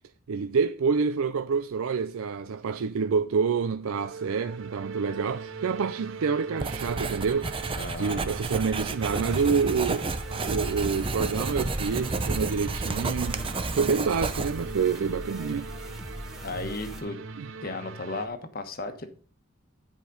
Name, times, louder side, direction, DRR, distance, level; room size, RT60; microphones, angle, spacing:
voice 1, 0.3-10.1 10.4-13.4 13.7-15.7 17.4-17.5, right 5 dB, 85° right, 0.4 m, -27 dB
sound 1, 4.0-18.3, right 4 dB, 65° right, 0.8 m, -41 dB
Writing, 6.6-14.8, right 3 dB, 25° right, 0.6 m, -31 dB
voice 2, 7.8-8.2 16.4-17.2 17.6-19.1, left 2 dB, 45° left, 1.2 m, -35 dB
sound 2, 9.0-17.0, equal, ahead, 1.0 m, -42 dB
10.5 x 5.0 x 5.3 m
head